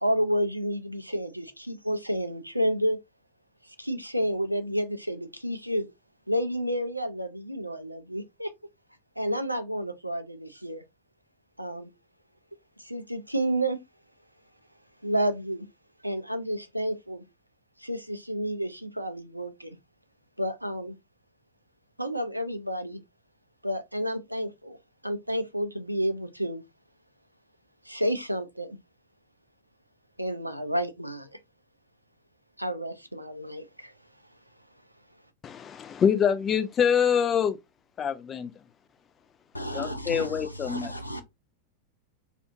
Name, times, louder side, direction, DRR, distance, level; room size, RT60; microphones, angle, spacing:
voice 1, 0.0-3.0 3.6-5.9 6.3-8.5 9.2-10.8 11.6-11.9 12.8-13.8 15.0-15.7 16.0-17.2 17.8-19.8 20.4-21.0 22.0-23.0 23.6-24.8 25.0-26.6 27.8-28.8 30.2-31.4 32.6-33.9, equal, 90° right, 0.4 m, -30 dB
voice 2, 35.4-37.6 38.0-38.5 39.7-40.9, left 7 dB, 25° left, 0.4 m, -25 dB
voice 3, 39.5-41.2, equal, 85° left, 0.4 m, -35 dB
2.5 x 2.3 x 2.7 m
figure-of-eight pair, 90°, 0 cm